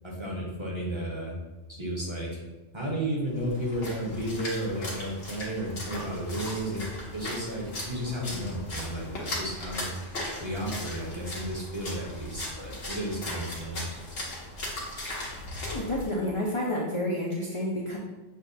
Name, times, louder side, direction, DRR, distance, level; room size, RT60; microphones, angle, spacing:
voice 1, 0.0-1.3 1.8-2.4 2.7-6.8 7.1-9.8 10.4-13.8, right 1 dB, 30° right, -4 dB, 0.7 m, -33 dB
Splash splatter, 3.3-16.1, left 1 dB, 80° left, 1.4 m, -38 dB
voice 2, 15.6-18.0, left 1 dB, 45° left, -3 dB, 0.4 m, -30 dB
6.6 x 2.3 x 2.6 m, 1.1 s
omnidirectional pair, 1.2 m